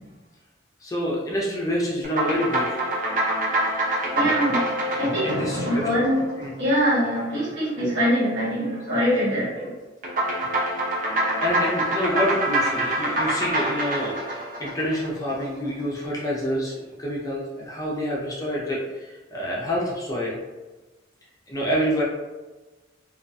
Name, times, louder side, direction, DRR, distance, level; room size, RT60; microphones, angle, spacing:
voice 1, 0.8-2.8 5.2-5.9 6.3-6.5 11.4-20.4 21.5-22.0, equal, 20° left, -4 dB, 0.4 m, -27 dB
sound 1, 2.0-6.7 10.0-15.4, right 1 dB, 45° right, 0.5 m, -26 dB
voice 2, 4.1-4.6 5.0-6.2 6.6-9.7, equal, 70° right, -9 dB, 1.3 m, -23 dB
2.3 x 2.1 x 2.5 m, 1.2 s
head